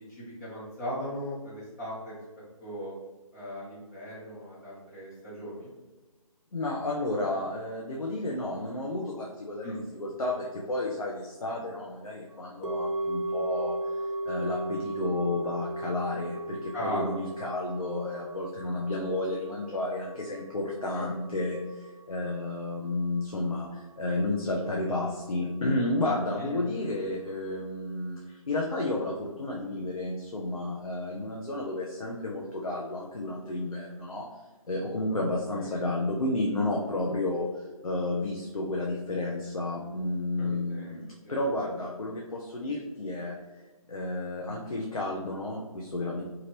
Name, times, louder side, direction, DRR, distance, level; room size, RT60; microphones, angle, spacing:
voice 1, 0.1-2.2 2.6-2.9 3.3-5.7 9.6-9.8 16.7-17.0 20.9-21.0 26.4-26.6 35.1-35.2 35.5-35.7 40.4-40.9 41.2-41.4, equal, 30° left, -8 dB, 1.0 m, -38 dB
voice 2, 6.5-13.8 14.3-34.3 34.7-37.5 37.8-43.4 43.9-46.2, left 2 dB, 75° left, -3 dB, 0.6 m, -31 dB
sound 1, 12.6-22.9 23.2-23.3, right 1 dB, 55° right, 0.4 m, -36 dB
2.9 x 2.4 x 3.1 m, 1.2 s
figure-of-eight pair, 155°, 18 cm